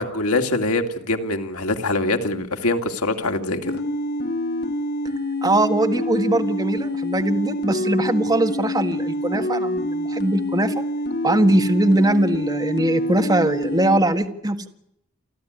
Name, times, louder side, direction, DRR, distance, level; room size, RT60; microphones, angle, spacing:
voice 1, 0.0-3.7, left 2 dB, 80° left, 5 dB, 2.7 m, -23 dB
sound 1, 3.6-14.0, left 1 dB, 45° left, 2.5 m, -26 dB
voice 2, 5.4-10.8 11.2-14.7, right 1 dB, 15° right, 7 dB, 1.7 m, -21 dB
29.5 x 12.0 x 9.6 m, 0.77 s
head